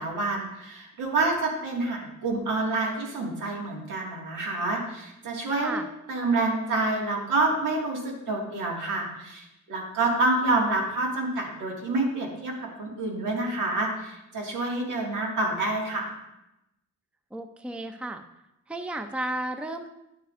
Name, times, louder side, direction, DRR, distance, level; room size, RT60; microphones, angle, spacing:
voice 1, 0.0-5.8 6.1-16.2, right 2 dB, 85° right, -1 dB, 2.0 m, -28 dB
voice 2, 17.3-18.2 18.7-19.9, right 1 dB, 5° right, 8 dB, 0.5 m, -33 dB
10.0 x 7.5 x 2.5 m, 0.89 s
cardioid pair, 80°, 30 cm